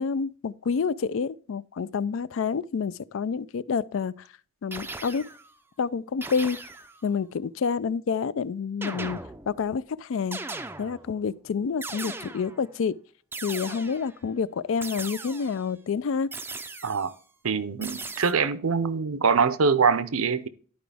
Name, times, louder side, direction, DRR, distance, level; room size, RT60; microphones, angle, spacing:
voice 1, 0.0-4.3 4.6-5.2 5.8-6.6 7.0-10.4 10.8-12.9 13.4-16.3, left 5 dB, 65° left, 0.4 m, -28 dB
sound 1, 4.7-5.5 6.2-7.0 8.8-9.7 10.3-11.2 11.8-12.7 13.3-14.2 14.8-15.7 16.3-17.2 17.8-18.3, right 3 dB, 10° right, 0.4 m, -38 dB
voice 2, 17.4-20.5, right 5 dB, 80° right, 0.7 m, -24 dB
11.5 x 5.0 x 3.4 m
head